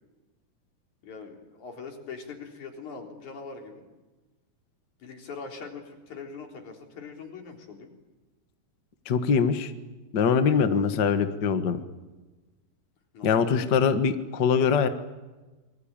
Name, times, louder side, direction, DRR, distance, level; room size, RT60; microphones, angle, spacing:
voice 1, 1.0-3.9 5.0-7.9 10.4-10.8 13.1-13.7, left 5 dB, 50° left, 2 dB, 4.9 m, -42 dB
voice 2, 9.0-9.7 10.1-11.8 13.2-14.9, left 6 dB, 80° left, 8 dB, 0.9 m, -23 dB
27.0 x 22.5 x 8.9 m, 1.2 s
omnidirectional pair, 4.5 m